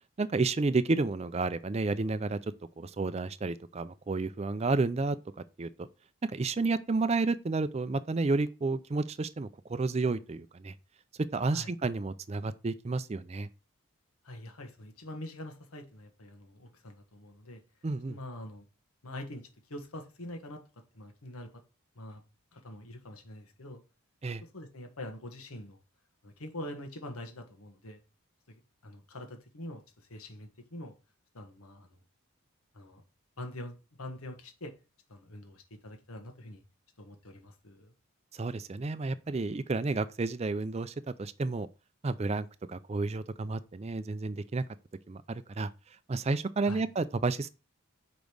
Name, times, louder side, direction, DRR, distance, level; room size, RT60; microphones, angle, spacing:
voice 1, 0.2-5.2 5.6-5.7 6.2-10.7 11.3-13.5 17.8-18.2 24.2-24.4 38.3-41.7 42.0-44.6 45.1-45.7 46.1-47.5, right 3 dB, 30° right, 0.4 m, -31 dB
voice 2, 14.2-17.6 18.1-18.7 19.0-21.6 21.9-22.2 22.5-23.8 24.4-25.8 26.2-28.0 28.5-30.9 31.3-31.9 32.7-33.0 33.4-34.7 35.1-36.6 37.0-37.9 46.6-46.8, left 1 dB, 80° left, 1.5 m, -44 dB
5.2 x 5.1 x 6.2 m
head